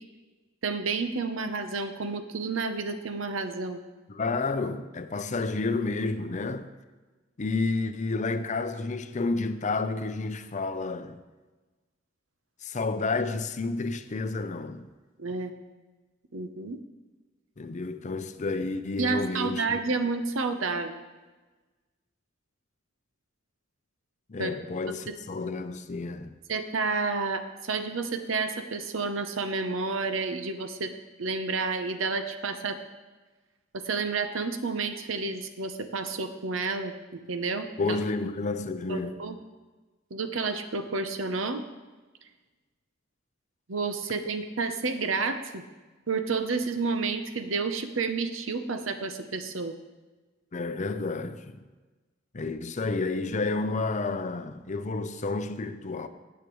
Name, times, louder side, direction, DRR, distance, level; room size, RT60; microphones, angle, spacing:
voice 1, 0.6-3.8 15.2-15.5 16.3-16.8 19.0-21.0 24.4-24.5 25.1-25.2 26.5-30.9 31.2-32.8 33.7-38.0 38.9-39.4 40.1-41.6 43.7-45.6 46.1-49.8, right 4 dB, 80° right, 0.8 m, -30 dB
voice 2, 4.1-6.7 7.4-11.2 12.6-14.9 17.6-19.8 24.3-26.3 37.8-39.2 50.5-51.6 52.3-56.1, left 3 dB, 40° left, 0.6 m, -30 dB
15.5 x 8.2 x 3.1 m
head